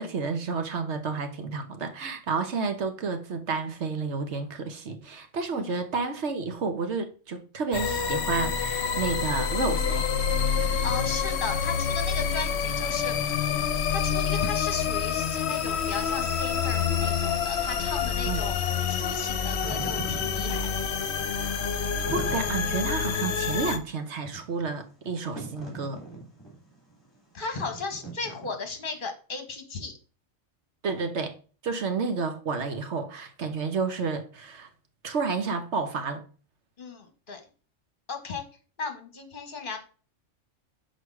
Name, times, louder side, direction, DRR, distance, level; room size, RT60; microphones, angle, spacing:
voice 1, 0.0-10.1 18.3-18.4 22.1-26.0 30.8-31.3 31.6-34.7 35.0-36.2, right 4 dB, 65° right, 1.3 m, -30 dB
sound 1, 7.7-23.8, left 7 dB, 60° left, 1.0 m, -27 dB
voice 2, 10.8-13.2 13.9-18.5 18.9-20.7 27.3-29.9 36.8-37.4 38.1-38.4 38.8-39.8, left 4 dB, 45° left, 1.5 m, -35 dB
Wind / Fire, 19.4-28.9, right 3 dB, 20° left, 2.7 m, -42 dB
6.3 x 4.8 x 4.7 m
omnidirectional pair, 1.3 m